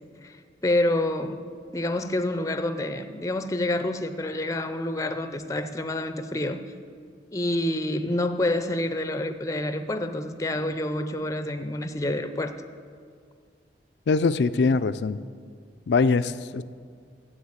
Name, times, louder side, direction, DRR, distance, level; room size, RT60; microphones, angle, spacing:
voice 1, 0.6-1.5 1.7-6.6 7.3-12.6, left 1 dB, 20° left, 9 dB, 0.5 m, -27 dB
voice 2, 14.1-15.2 15.9-16.6, left 4 dB, 75° left, 14 dB, 0.4 m, -22 dB
12.5 x 7.8 x 8.1 m, 2.2 s
head